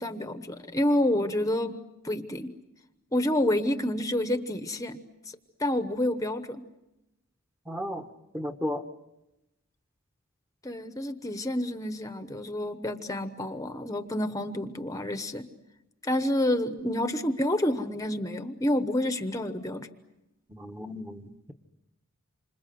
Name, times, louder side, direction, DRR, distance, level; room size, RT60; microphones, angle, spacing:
voice 1, 0.0-1.8 2.0-2.5 3.1-5.0 5.6-6.6 10.6-15.5 16.0-19.9, left 1 dB, 15° left, 1.0 m, -28 dB
voice 2, 7.7-8.0 8.3-8.8 16.8-16.9 20.5-21.5, equal, 10° right, 1.2 m, -34 dB
28.0 x 26.5 x 7.8 m
head